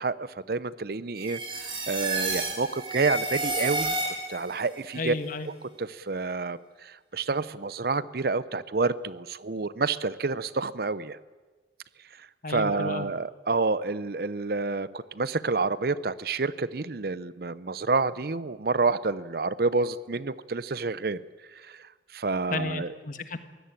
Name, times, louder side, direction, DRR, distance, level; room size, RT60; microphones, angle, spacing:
voice 1, 0.0-5.1 5.8-11.2 12.2-21.2 21.5-22.9, right 3 dB, 55° right, 17 dB, 0.7 m, -29 dB
sound 1, 1.2-4.5, right 2 dB, 30° right, 4.1 m, -30 dB
voice 2, 4.9-5.5 12.4-13.1 22.5-23.4, left 3 dB, 50° left, 10 dB, 1.4 m, -33 dB
23.0 x 16.5 x 9.0 m, 1.3 s
head